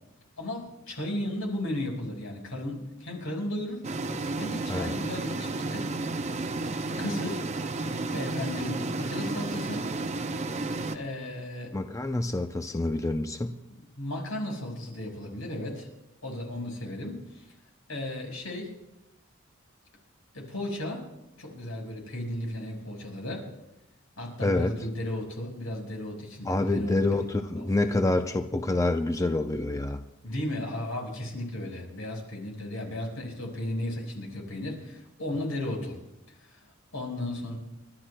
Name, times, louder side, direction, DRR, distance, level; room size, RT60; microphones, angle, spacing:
voice 1, 0.4-3.9 4.4-5.9 6.7-9.8 10.9-11.7 14.0-15.9 16.2-17.4 17.9-18.7 20.3-21.0 21.4-23.4 24.2-27.3 27.6-27.7 30.2-36.0 36.4-36.6 36.9-37.6, left 1 dB, 85° left, 0 dB, 4.9 m, -35 dB
sound 1, 3.8-11.0, right 2 dB, 35° right, 0.7 m, -32 dB
voice 2, 11.7-13.5 24.4-24.7 26.5-30.0, left 2 dB, 15° left, 7 dB, 0.5 m, -27 dB
30.0 x 12.5 x 2.2 m, 0.91 s
head